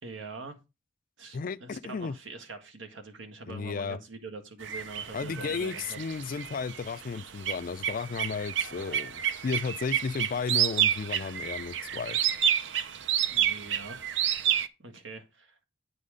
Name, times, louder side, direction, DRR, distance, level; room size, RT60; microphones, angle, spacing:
voice 1, 0.0-0.6 1.2-6.0 13.3-14.0 14.2-15.6, right 3 dB, 90° right, 1.6 m, -44 dB
voice 2, 1.3-2.2 3.5-4.0 5.1-12.2, left 5 dB, 45° left, 0.4 m, -34 dB
sound 1, 4.6-14.7, right 9 dB, 70° right, 0.6 m, -30 dB
9.4 x 4.1 x 5.0 m
head